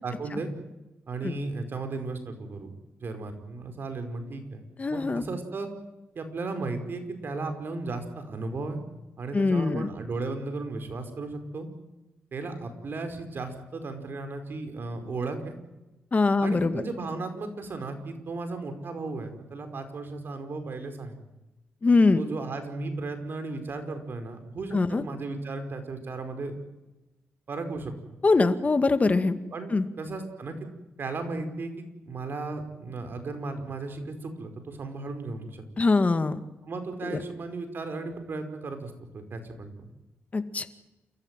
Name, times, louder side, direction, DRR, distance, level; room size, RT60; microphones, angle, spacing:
voice 1, 0.0-0.5 1.1-2.7 3.0-5.7 6.1-8.8 9.2-11.7 12.3-15.6 16.4-21.2 22.1-26.6 27.5-27.9 29.5-30.6 31.0-35.6 36.6-39.9, right 3 dB, 55° right, 7 dB, 5.1 m, -35 dB
voice 2, 4.8-5.2 9.3-9.9 16.1-16.8 21.8-22.2 24.7-25.0 28.2-29.4 29.7-29.9 35.8-36.4 37.0-37.2 40.3-40.7, left 3 dB, 35° left, 10 dB, 2.1 m, -23 dB
29.0 x 14.5 x 9.2 m, 1.0 s
cardioid pair, 75°, 4 cm